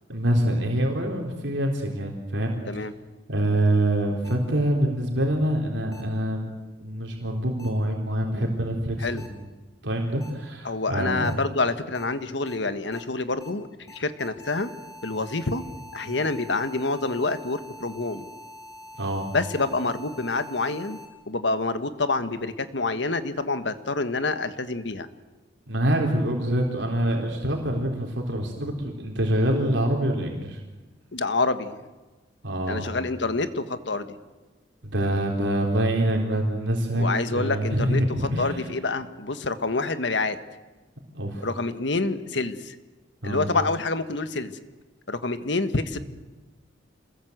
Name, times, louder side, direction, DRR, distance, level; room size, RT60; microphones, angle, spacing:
voice 1, 0.1-2.6 3.3-6.5 6.8-9.3 9.8-11.3 16.1-16.2 19.0-19.3 25.7-30.6 32.4-32.9 34.8-38.6 41.1-41.5 43.2-43.5, right 1 dB, 75° right, 1 dB, 3.8 m, -25 dB
sound 1, 4.2-4.3 5.9-6.0 7.6-7.7 9.2-9.3 10.2-10.3 11.2-11.3 11.9-12.0 12.5-12.6 12.9-13.0 13.4-13.5 13.9-21.1, left 1 dB, 20° left, 3.8 m, -45 dB
voice 2, 10.6-14.7 15.0-15.6 15.9-18.3 19.3-21.0 21.3-25.1 31.1-31.8 32.7-34.2 36.9-40.4 41.4-42.7 43.2-44.6 45.1-46.0, left 3 dB, 70° left, 10 dB, 1.5 m, -27 dB
27.5 x 21.0 x 8.1 m, 1.2 s
head